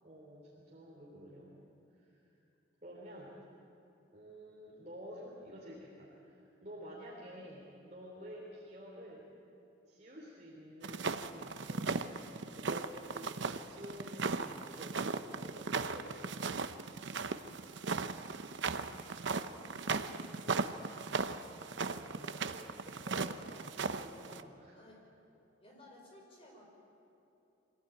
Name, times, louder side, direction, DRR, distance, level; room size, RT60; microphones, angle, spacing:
voice 1, 0.0-1.6 1.9-2.2 2.8-3.3 4.1-9.3 9.9-16.7 21.7-23.5 23.9-24.8, equal, 35° right, -5 dB, 3.5 m, -51 dB
sound 1, 10.8-24.4, right 4 dB, 65° right, 0.8 m, -37 dB
voice 2, 18.5-20.7 23.5-23.8 24.7-25.0 25.6-26.7, left 1 dB, 30° left, -1 dB, 5.4 m, -57 dB
24.0 x 17.0 x 9.2 m, 2.9 s
head